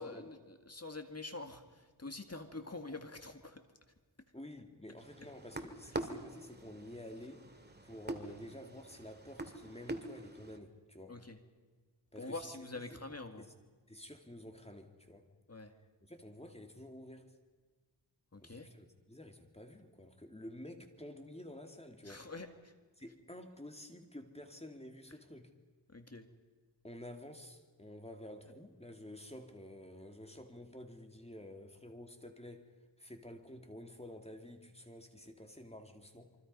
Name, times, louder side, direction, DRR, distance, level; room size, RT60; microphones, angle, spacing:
voice 1, 0.0-3.6 11.1-11.4 12.2-13.5 15.5-15.7 18.3-18.7 22.0-22.7 25.9-26.3, left 2 dB, 35° left, 7 dB, 2.0 m, -46 dB
voice 2, 4.3-7.5 7.8-11.2 12.1-13.0 13.4-13.5 13.9-15.3 16.0-17.3 18.4-22.3 23.0-25.5 26.8-36.4, left 1 dB, 15° left, 5 dB, 2.4 m, -50 dB
sound 1, 5.0-10.6, right 2 dB, 20° right, 2.1 m, -45 dB
27.5 x 24.5 x 5.5 m, 1.4 s
wide cardioid pair, 60°, 45 cm